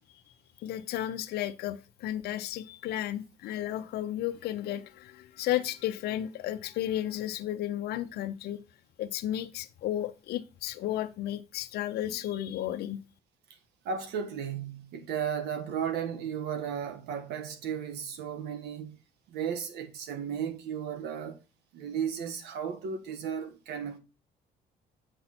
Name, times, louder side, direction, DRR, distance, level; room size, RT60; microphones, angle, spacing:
voice 1, 0.6-8.6 9.0-13.0, left 12 dB, 70° left, 0.7 m, -33 dB
voice 2, 13.8-18.9 19.3-21.4 21.7-24.0, right 7 dB, 80° right, 1.4 m, -34 dB
7.9 x 5.6 x 4.3 m
cardioid pair, 110°, 17 cm